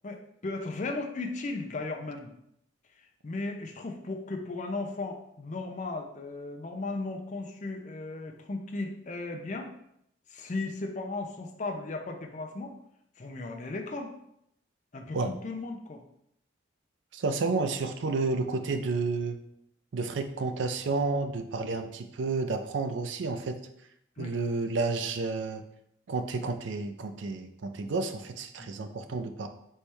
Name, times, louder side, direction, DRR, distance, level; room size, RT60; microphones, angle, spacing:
voice 1, 0.0-2.3 3.2-9.7 10.3-12.8 13.2-14.1 14.9-16.0 24.2-24.3 27.8-27.9 28.6-28.7, left 3 dB, 40° left, 3 dB, 0.5 m, -36 dB
voice 2, 17.1-19.4 19.9-23.6 24.2-25.6 26.1-29.5, right 3 dB, 70° right, 8 dB, 0.4 m, -31 dB
4.4 x 3.2 x 3.4 m, 0.75 s
head